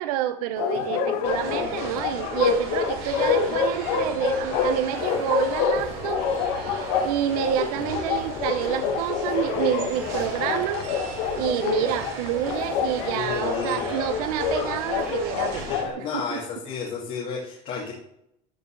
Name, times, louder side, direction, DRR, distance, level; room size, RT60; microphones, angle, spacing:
voice 1, 0.0-6.2 7.0-10.8 11.4-15.6 16.0-16.4, right 12 dB, 90° right, 11 dB, 0.6 m, -28 dB
Bark, 0.6-15.9, left 6 dB, 75° left, 1.2 m, -27 dB
sound 1, 1.2-15.8, right 4 dB, 55° right, 3.0 m, -37 dB
voice 2, 13.1-14.0 15.7-17.9, left 6 dB, 45° left, -5 dB, 2.1 m, -32 dB
13.5 x 5.3 x 3.2 m, 0.77 s
cardioid pair, 150°, 19 cm